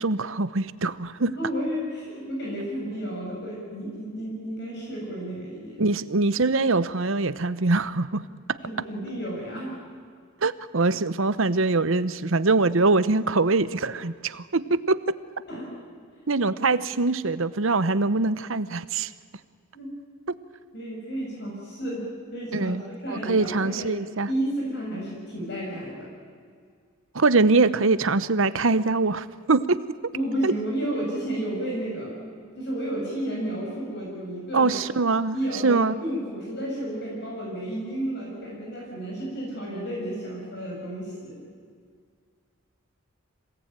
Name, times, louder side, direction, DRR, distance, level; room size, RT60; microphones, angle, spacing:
voice 1, 0.0-1.3 5.8-8.6 10.4-15.0 16.3-19.1 22.5-22.8 23.1-24.3 27.1-29.8 30.4-30.5 34.5-35.4 35.6-36.0, right 3 dB, 65° right, 15 dB, 0.9 m, -23 dB
voice 2, 1.3-5.8 8.6-9.7 15.5-15.7 19.7-19.9 20.7-22.7 23.0-23.9 24.3-26.1 30.1-34.8 35.3-41.4, right 1 dB, 55° left, -3 dB, 6.4 m, -32 dB
26.5 x 18.0 x 9.1 m, 2.1 s
head